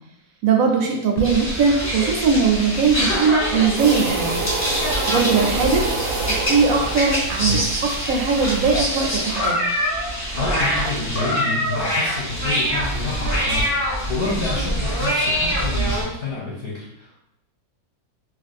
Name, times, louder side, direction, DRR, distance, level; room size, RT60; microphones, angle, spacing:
voice 1, 0.4-4.5 5.1-5.8 6.3-9.6, right 5 dB, 70° right, 1 dB, 1.0 m, -20 dB
sound 1, 1.2-16.0, equal, 25° left, 1.1 m, -24 dB
sound 2, 3.8-8.8, right 3 dB, 85° right, 1.2 m, -28 dB
voice 2, 10.3-17.1, left 3 dB, 45° left, -5 dB, 0.9 m, -29 dB
2.8 x 2.5 x 4.1 m, 0.84 s
omnidirectional pair, 1.6 m